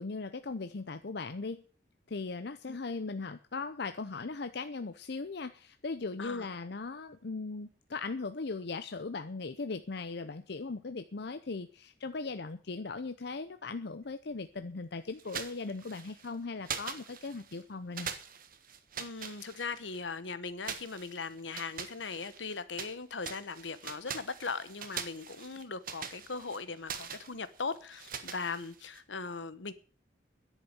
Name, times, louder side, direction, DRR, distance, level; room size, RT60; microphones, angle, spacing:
voice 1, 0.0-1.6 2.1-18.1, left 3 dB, 60° left, 0.7 m, -38 dB
sound 1, 15.2-16.3 16.6-17.6 17.9-20.0 20.6-23.0 23.2-29.0, right 7 dB, 50° right, 1.4 m, -43 dB
voice 2, 19.0-29.7, left 4 dB, 80° left, 1.1 m, -39 dB
10.5 x 8.4 x 9.0 m
head